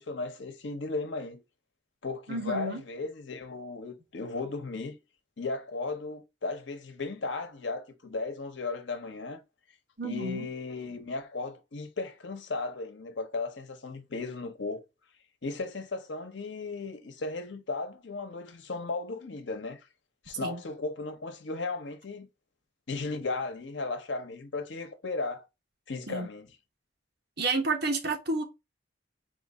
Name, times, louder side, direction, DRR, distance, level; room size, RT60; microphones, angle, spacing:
voice 1, 0.0-1.4 2.0-4.9 5.4-9.4 10.0-14.8 15.4-19.8 20.2-22.3 22.9-25.4 25.9-26.5, left 3 dB, 85° left, 0.9 m, -35 dB
voice 2, 2.3-2.8 10.0-10.5 20.4-20.6 26.1-26.3 27.4-28.4, right 2 dB, 60° right, 1.3 m, -30 dB
4.4 x 2.5 x 4.1 m
head